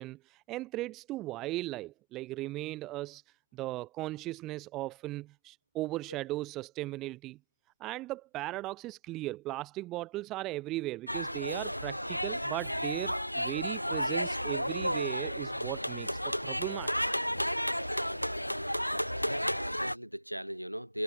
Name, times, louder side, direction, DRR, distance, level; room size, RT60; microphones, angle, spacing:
voice 1, 0.0-3.2 3.5-7.4 7.8-16.9, right 18 dB, 35° right, 0.7 m, -37 dB
sound 1, 11.1-20.0, equal, 90° left, 0.4 m, -32 dB
voice 2, 18.9-21.0, equal, 90° right, 6.3 m, -39 dB
figure-of-eight pair, 90°, 0 cm